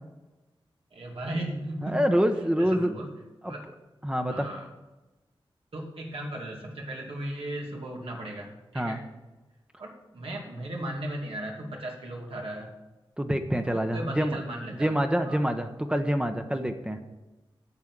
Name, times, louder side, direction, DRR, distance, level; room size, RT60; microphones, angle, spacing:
voice 1, 0.9-2.1 2.6-3.1 3.4-3.6 4.2-4.7 5.7-9.0 9.8-12.7 13.6-14.9 15.2-15.4, right 1 dB, 85° right, -1 dB, 2.6 m, -36 dB
voice 2, 1.8-2.9 3.4-3.5 4.0-4.5 8.7-9.0 13.2-14.4 14.8-17.0, equal, 10° right, 5 dB, 0.9 m, -26 dB
9.7 x 6.5 x 8.9 m, 1.1 s
wide cardioid pair, 95°, 9 cm